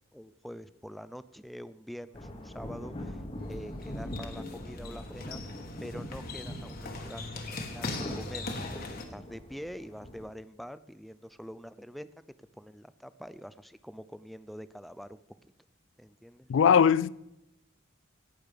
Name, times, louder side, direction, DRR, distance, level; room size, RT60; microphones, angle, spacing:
voice 1, 0.1-3.2 3.5-5.5 5.8-12.1 12.5-15.5 16.0-16.5, equal, ahead, 0.4 m, -45 dB
sound 1, 2.1-10.3, left 1 dB, 30° left, 1.2 m, -42 dB
sound 2, 3.4-9.0, left 2 dB, 50° left, 1.4 m, -40 dB
voice 2, 16.5-17.1, left 7 dB, 70° left, 0.3 m, -20 dB
17.5 x 6.6 x 5.1 m
head